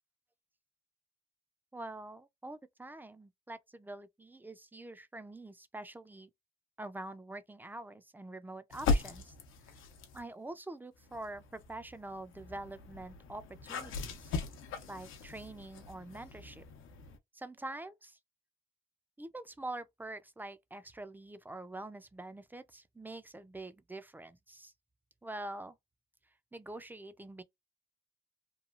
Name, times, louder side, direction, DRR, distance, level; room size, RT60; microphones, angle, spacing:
voice 1, 1.7-6.3 6.8-9.3 10.1-14.2 14.9-16.6 17.3-18.2 19.2-24.7 25.2-25.7 26.5-27.4, right 2 dB, 10° right, 0.4 m, -45 dB
sound 1, 8.7-10.3 11.0-17.2, left 4 dB, 90° left, 0.7 m, -38 dB
3.0 x 2.3 x 2.4 m
cardioid pair, 90°, 20 cm